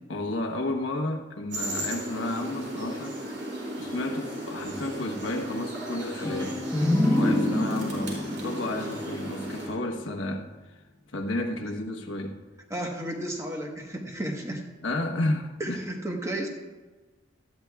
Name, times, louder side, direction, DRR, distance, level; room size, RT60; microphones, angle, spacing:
voice 1, 0.1-3.1 3.8-6.6 7.1-10.5 11.1-12.4 14.8-15.8, left 1 dB, 80° left, 1 dB, 1.2 m, -31 dB
sound 1, 1.5-9.7, right 1 dB, 65° right, 4.2 m, -35 dB
sound 2, 6.2-9.9, left 1 dB, 10° left, 1.0 m, -27 dB
voice 2, 12.7-14.6 15.6-16.5, right 1 dB, 15° right, 1 dB, 1.2 m, -33 dB
17.5 x 13.0 x 2.3 m, 1.2 s
head